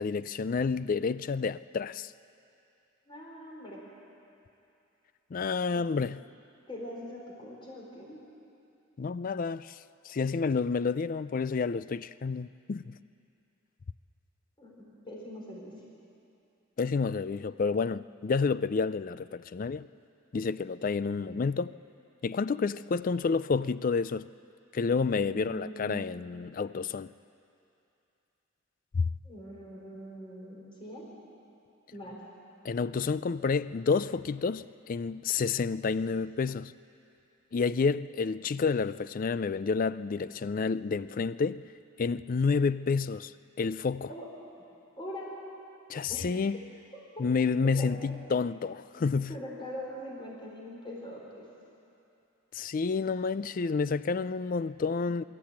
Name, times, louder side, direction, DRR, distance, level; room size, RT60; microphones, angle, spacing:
voice 1, 0.0-2.1 5.3-6.2 9.0-9.8 10.1-13.0 16.8-19.9 20.3-21.7 22.2-24.3 24.7-27.1 28.9-29.0 32.6-36.7 37.5-41.6 42.0-43.3 43.6-44.1 45.9-46.6 47.2-49.3 52.5-55.2, left 4 dB, 40° left, 0.4 m, -29 dB
voice 2, 3.1-3.8 5.7-5.8 6.7-8.2 14.6-15.7 25.1-26.2 29.2-31.1 31.9-32.2 44.1-44.3 45.0-45.3 46.1-46.3 47.2-47.3 47.6-47.9 49.3-51.4, equal, 25° left, 4.2 m, -42 dB
23.0 x 13.5 x 8.7 m
head